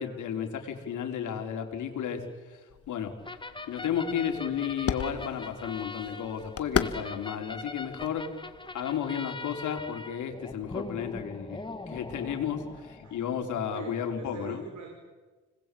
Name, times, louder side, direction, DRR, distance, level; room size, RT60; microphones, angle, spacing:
voice 1, 0.0-2.6 2.9-3.1 3.7-8.3 8.7-11.6 11.9-14.6, left 8 dB, 75° left, 4 dB, 4.9 m, -33 dB
sound 1, 2.7-9.0, left 7 dB, 50° left, 1.9 m, -37 dB
sound 2, 3.2-13.6, left 3 dB, 15° left, 2.3 m, -42 dB
voice 2, 12.5-14.9, right 5 dB, 70° right, 3 dB, 5.4 m, -46 dB
30.0 x 21.0 x 8.8 m, 1.3 s
cardioid pair, 90°, 30 cm